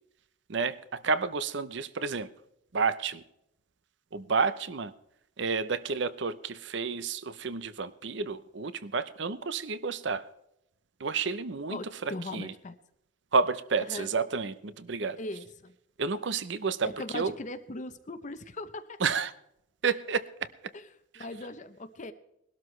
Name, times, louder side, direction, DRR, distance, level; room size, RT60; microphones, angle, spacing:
voice 1, 0.5-2.3 2.7-3.2 4.1-4.9 5.4-10.3 11.0-12.5 13.3-15.2 16.0-17.3 19.0-19.3 19.8-20.2 21.1-21.2, right 5 dB, 60° right, 15 dB, 0.7 m, -30 dB
voice 2, 11.7-12.8 13.9-14.1 15.2-15.7 16.8-19.0 20.7-20.9 21.2-22.1, left 2 dB, 40° left, 9 dB, 0.7 m, -39 dB
21.0 x 12.5 x 3.2 m, 0.81 s
head